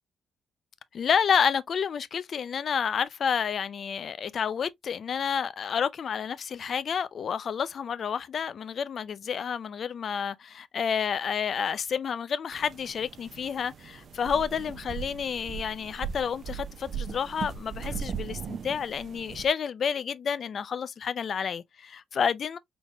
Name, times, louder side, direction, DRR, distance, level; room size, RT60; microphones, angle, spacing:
voice 1, 0.9-22.6, left 7 dB, 55° left, 0.4 m, -30 dB
sound 1, 12.5-19.5, right 7 dB, 55° right, 0.5 m, -38 dB
4.0 x 3.4 x 2.2 m
cardioid pair, 115°, 0 cm